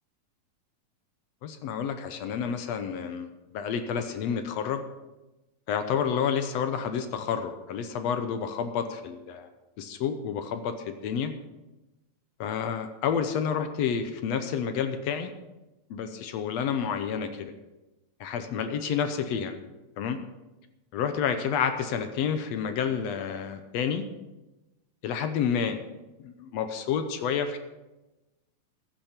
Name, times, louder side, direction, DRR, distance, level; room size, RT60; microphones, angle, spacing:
voice 1, 1.4-3.3 3.5-4.8 5.7-9.5 9.8-11.3 12.4-15.3 15.9-17.5 18.2-19.5 20.0-20.2 20.9-24.0 25.0-25.8 26.2-27.6, left 7 dB, 70° left, 8 dB, 1.7 m, -29 dB
15.0 x 10.5 x 4.4 m, 1.0 s
omnidirectional pair, 3.7 m